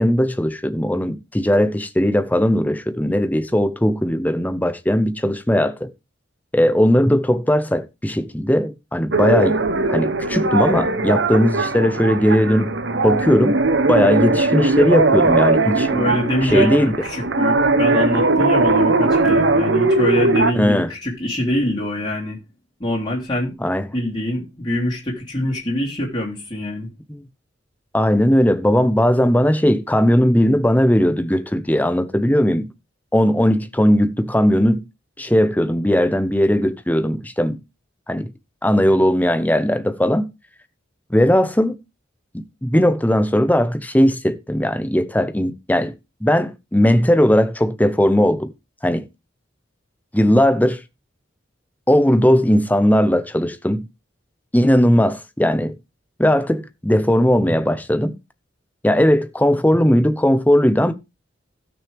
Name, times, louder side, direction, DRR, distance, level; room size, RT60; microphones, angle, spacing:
voice 1, 0.0-5.9 6.5-9.6 9.9-12.7 13.0-13.6 13.9-15.9 16.4-16.9 20.5-20.9 23.6-23.9 27.1-27.3 27.9-32.7 33.1-34.8 35.2-37.6 38.1-38.3 38.6-40.3 41.1-41.8 42.3-45.9 46.2-48.5 48.8-49.0 50.1-50.8 51.9-53.8 54.5-55.7 56.2-58.2 58.8-60.9, equal, 10° left, 0.8 m, -18 dB
sound 1, 9.1-20.5, right 3 dB, 65° right, 1.0 m, -19 dB
voice 2, 15.8-22.4 22.8-23.5 23.9-26.9, left 1 dB, 25° left, 3.4 m, -24 dB
16.5 x 6.2 x 3.5 m
head